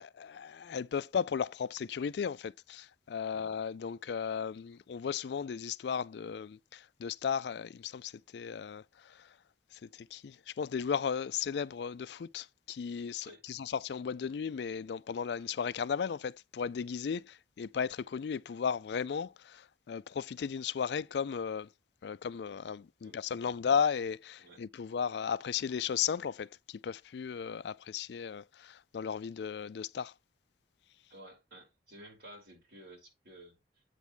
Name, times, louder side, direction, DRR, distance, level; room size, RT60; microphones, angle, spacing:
voice 1, 0.0-9.3 9.7-21.7 22.0-30.1, left 7 dB, 65° left, 0.4 m, -35 dB
voice 2, 23.0-23.6 24.4-24.6 31.1-33.8, right 1 dB, 60° right, 5.2 m, -54 dB
8.2 x 3.5 x 6.2 m
head